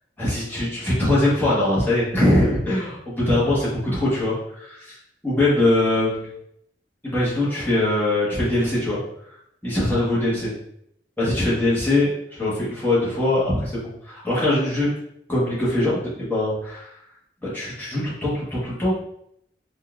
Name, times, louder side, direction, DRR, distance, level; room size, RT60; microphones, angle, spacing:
voice 1, 0.2-5.0 5.2-6.3 7.0-9.0 9.6-10.5 11.2-14.9 15.3-16.9 17.4-19.0, left 1 dB, 10° left, -8 dB, 1.1 m, -22 dB
3.8 x 2.4 x 2.4 m, 0.74 s
head